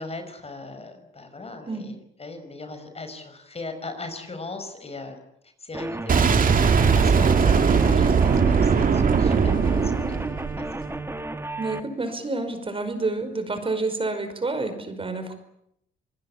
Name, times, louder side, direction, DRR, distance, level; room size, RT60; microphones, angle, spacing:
voice 1, 0.0-5.2 5.6-10.8, left 3 dB, 30° left, 7 dB, 5.5 m, -39 dB
sound 1, 5.7-11.8, right 2 dB, 10° right, 1.9 m, -33 dB
Boom, 6.1-11.0, right 6 dB, 45° right, 2.5 m, -20 dB
voice 2, 11.6-15.4, right 3 dB, 25° right, 8 dB, 5.2 m, -29 dB
27.0 x 20.0 x 8.7 m, 0.78 s
cardioid pair, 90°, 20 cm